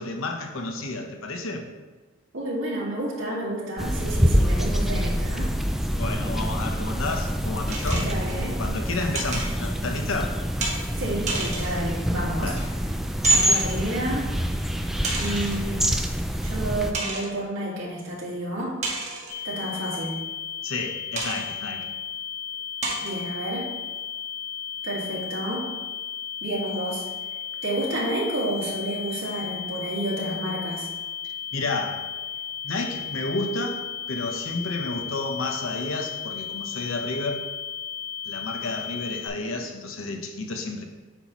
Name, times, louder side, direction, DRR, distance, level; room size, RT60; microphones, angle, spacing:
voice 1, 0.0-1.7 5.9-8.1 8.6-10.4 12.4-12.7 20.6-21.9 31.5-32.0 32.6-33.8 34.1-37.4 38.3-40.8, left 2 dB, 80° left, 3 dB, 0.9 m, -31 dB
voice 2, 2.3-5.5 8.0-8.6 11.0-12.5 13.3-14.3 15.2-15.9 16.4-18.8 19.4-20.2 23.0-23.7 24.8-25.7 26.4-27.0 27.6-30.9, right 1 dB, 75° right, -6 dB, 2.0 m, -30 dB
sound 1, 3.8-16.9, equal, ahead, 0.3 m, -26 dB
sound 2, 7.7-8.4 9.1-9.5 10.6-10.8 11.3-11.8 12.6-12.7 13.2-13.8 15.0-15.7 16.2-16.3 16.9-17.4 18.8-19.4 21.2-21.5 22.1-22.2 22.8-23.2, right 3 dB, 35° right, 1.4 m, -31 dB
sound 3, 19.3-39.3, left 8 dB, 50° left, 1.9 m, -35 dB
8.2 x 5.6 x 3.1 m, 1.3 s
head